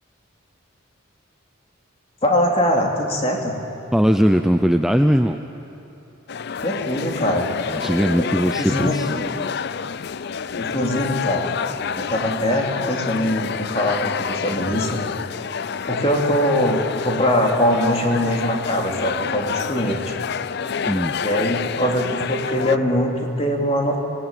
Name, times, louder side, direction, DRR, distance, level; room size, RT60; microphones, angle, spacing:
voice 1, 2.2-3.5 6.6-7.5 8.2-8.3 8.6-8.9 10.6-11.5 12.0-15.0 15.9-20.0 21.2-24.0, equal, 30° left, 0 dB, 3.0 m, -22 dB
voice 2, 3.9-5.4 7.7-9.5 20.9-21.2, equal, ahead, 6 dB, 0.5 m, -19 dB
sound 1, 6.3-22.8, left 6 dB, 55° left, 0.5 m, -28 dB
26.0 x 19.0 x 9.1 m, 2.9 s
head